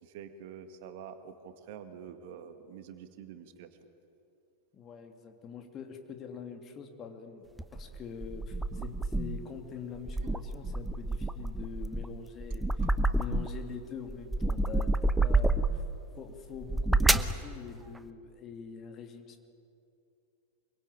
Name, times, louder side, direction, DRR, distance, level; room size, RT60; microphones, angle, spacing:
voice 1, 0.0-3.7 12.8-13.2, right 8 dB, 50° right, 8 dB, 2.0 m, -47 dB
voice 2, 4.7-7.4 7.7-12.8 13.1-15.8 16.2-19.5, left 6 dB, 30° left, 5 dB, 2.9 m, -44 dB
sound 1, 7.6-9.5 9.9-13.7 14.1-15.9 16.6-17.4, right 2 dB, 5° right, 0.9 m, -29 dB
25.5 x 23.5 x 8.8 m, 2.6 s
figure-of-eight pair, 90°, 0 cm